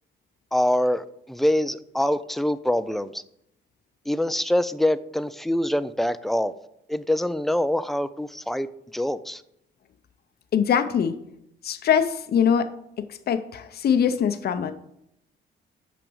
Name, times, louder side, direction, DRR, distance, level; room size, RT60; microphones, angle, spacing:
voice 1, 0.5-3.2 4.1-6.5 6.9-8.7 8.9-9.4, left 1 dB, ahead, 14 dB, 0.4 m, -24 dB
voice 2, 10.5-11.1 11.6-12.7 13.0-14.7, left 8 dB, 55° left, 10 dB, 0.6 m, -22 dB
6.1 x 5.1 x 6.2 m, 0.76 s
cardioid pair, 90°, 20 cm